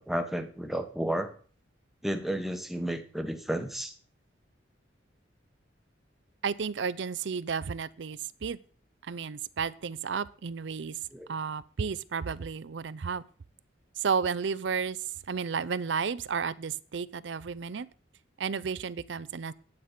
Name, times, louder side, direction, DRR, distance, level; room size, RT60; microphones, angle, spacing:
voice 1, 0.0-1.3 2.0-3.9 11.1-11.3, right 1 dB, ahead, 6 dB, 1.0 m, -32 dB
voice 2, 6.4-8.6 9.0-11.0 11.3-13.2 14.0-15.0 15.3-17.9 18.4-19.5, right 6 dB, 75° right, 19 dB, 0.5 m, -32 dB
9.5 x 8.8 x 5.1 m, 0.42 s
head